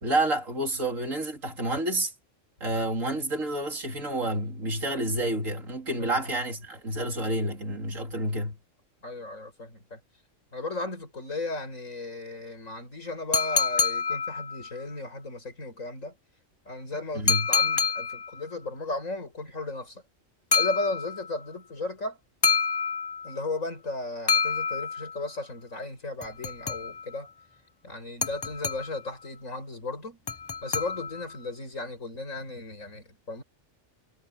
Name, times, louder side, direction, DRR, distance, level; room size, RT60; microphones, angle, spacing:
voice 1, 0.0-2.1 2.6-8.6 17.1-17.5, right 1 dB, 80° right, 3.8 m, -29 dB
voice 2, 9.0-10.0 10.5-16.2 16.6-20.0 20.5-22.2 23.2-27.3 27.8-30.2 30.6-33.4, left 2 dB, 80° left, 6.7 m, -35 dB
sound 1, 13.3-14.8 17.3-18.4 20.5-21.4 22.4-23.5 24.3-25.3 26.2-27.2 28.2-29.1 30.3-31.4, left 5 dB, 25° left, 0.5 m, -27 dB
omnidirectional pair, 1.3 m